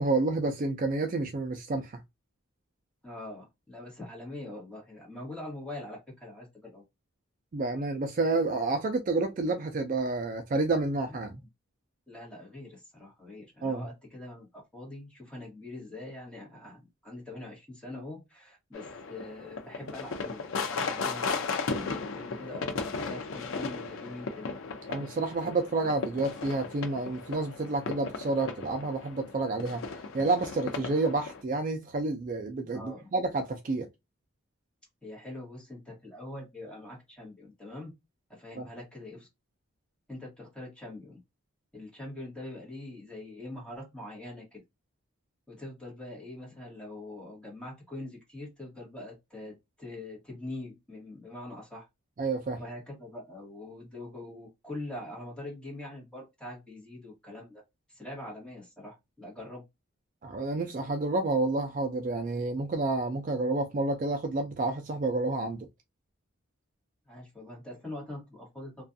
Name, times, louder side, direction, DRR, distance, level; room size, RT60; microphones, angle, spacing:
voice 1, 0.0-2.0 7.5-11.4 13.6-13.8 24.9-29.8 30.1-33.9 38.6-38.7 52.2-52.6 60.2-65.7, right 3 dB, 40° right, 0.3 m, -29 dB
voice 2, 3.0-6.8 11.1-11.2 12.1-21.4 21.7-24.5 24.8-24.9 32.7-33.1 35.0-37.9 38.3-39.3 40.1-41.2 41.7-44.6 45.5-51.9 52.6-57.6 57.9-59.6 67.1-68.8, left 1 dB, 5° left, 1.2 m, -43 dB
sound 1, 18.7-31.4, left 4 dB, 70° left, 0.5 m, -36 dB
2.4 x 2.3 x 2.5 m
head